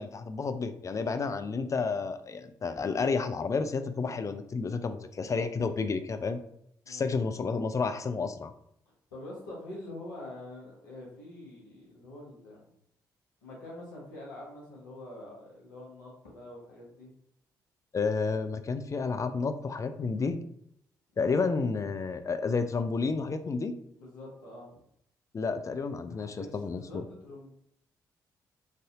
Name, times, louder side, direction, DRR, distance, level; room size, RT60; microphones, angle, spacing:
voice 1, 0.0-6.4 6.9-8.5 17.9-20.4 21.2-23.7 25.3-26.8, left 4 dB, 35° left, 10 dB, 0.4 m, -31 dB
voice 2, 9.1-12.7 13.4-17.1 24.0-24.8 26.1-27.5, left 1 dB, 85° left, -4 dB, 0.9 m, -45 dB
3.2 x 2.6 x 2.4 m, 0.71 s
hypercardioid pair, 40°, 10 cm